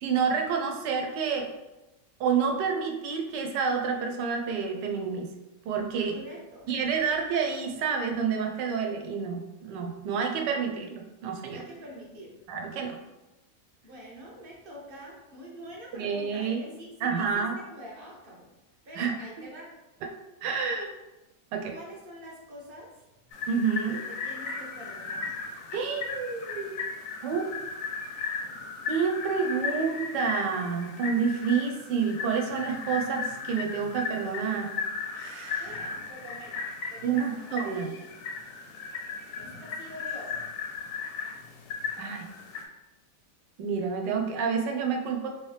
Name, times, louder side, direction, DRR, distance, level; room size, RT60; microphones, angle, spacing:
voice 1, 0.0-1.5 2.2-5.3 5.6-6.2 6.7-11.6 12.5-13.0 15.9-16.6 17.0-17.5 19.0-19.2 20.0-20.1 20.4-20.9 21.5-21.7 23.5-24.0 25.7-26.7 27.2-27.5 28.9-34.7 35.1-35.8 37.0-37.9 42.0-42.3 43.6-45.3, right 6 dB, 85° right, 2 dB, 1.2 m, -29 dB
voice 2, 6.1-6.7 11.5-12.4 13.8-18.5 18.8-19.7 21.7-23.0 23.9-25.3 35.6-38.1 39.4-40.4, equal, 50° right, -3 dB, 0.7 m, -45 dB
sound 1, 23.3-42.6, left 5 dB, 65° left, 0.8 m, -36 dB
3.1 x 2.9 x 3.1 m, 1.0 s
omnidirectional pair, 1.8 m